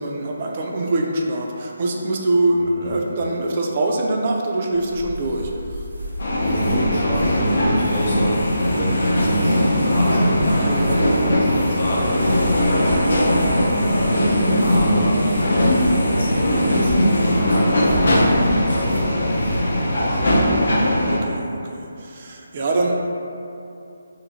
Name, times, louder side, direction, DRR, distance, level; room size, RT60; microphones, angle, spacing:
voice 1, 0.0-5.9 10.6-11.5 12.0-12.1 20.2-22.9, right 2 dB, 40° right, -1 dB, 0.3 m, -24 dB
sound 1, 4.7-19.7, equal, 85° right, 0.6 m, -34 dB
sound 2, 6.2-21.2, left 1 dB, 70° left, 0.5 m, -19 dB
voice 2, 6.4-8.4 8.8-10.7 11.2-13.1 13.4-14.1 14.6-20.0, equal, 50° left, -7 dB, 0.9 m, -28 dB
2.9 x 2.6 x 2.5 m, 2.7 s
figure-of-eight pair, 160°, 0 cm